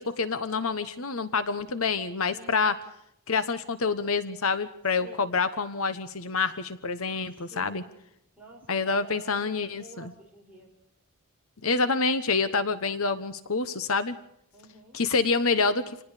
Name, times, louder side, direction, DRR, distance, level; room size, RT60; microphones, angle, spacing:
voice 1, 0.0-2.7 3.3-7.8 8.7-10.1 11.6-14.2 14.9-16.0, left 4 dB, 65° left, 12 dB, 1.2 m, -27 dB
voice 2, 2.3-2.8 5.0-5.4 7.4-8.0 8.4-10.7 14.5-15.0, right 1 dB, 10° right, -2 dB, 7.3 m, -50 dB
27.0 x 19.0 x 5.1 m, 0.74 s
head